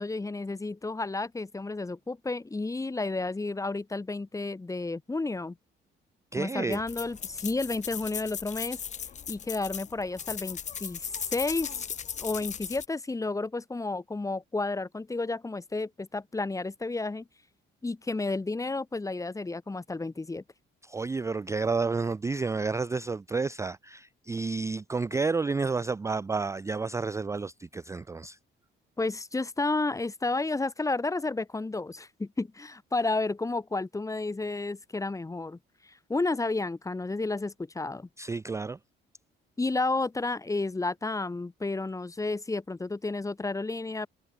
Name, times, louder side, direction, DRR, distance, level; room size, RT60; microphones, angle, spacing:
voice 1, 0.0-5.6 6.4-8.8 9.3-11.7 12.2-17.2 17.8-20.4 29.0-35.6 35.8-38.1 39.6-44.1, left 3 dB, 15° left, 1.0 m, -31 dB
voice 2, 6.3-6.8 20.8-28.4 38.2-38.8, right 4 dB, 15° right, 0.3 m, -30 dB
sound 1, 6.7-12.9, left 8 dB, 35° left, 0.5 m, -37 dB
cardioid pair, 90°, 20 cm